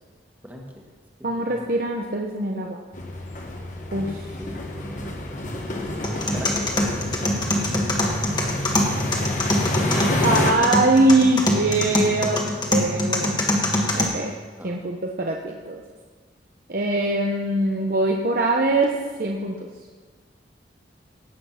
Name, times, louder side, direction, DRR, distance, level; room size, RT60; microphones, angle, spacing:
voice 1, 0.4-0.8 1.2-1.6 4.4-5.3 6.2-7.7 9.9-10.5 14.6-14.8, equal, 10° right, 0 dB, 1.8 m, -37 dB
voice 2, 1.2-2.8 3.9-4.3 10.2-12.4 12.7-13.4 13.9-14.3 14.6-15.8 16.7-18.9 19.2-19.7, right 2 dB, 50° right, 0 dB, 0.9 m, -22 dB
sound 1, 2.9-10.5, left 1 dB, 45° left, 1.5 m, -28 dB
sound 2, 6.0-14.0, left 1 dB, 25° left, 1.6 m, -24 dB
17.5 x 7.9 x 5.9 m, 1.5 s
head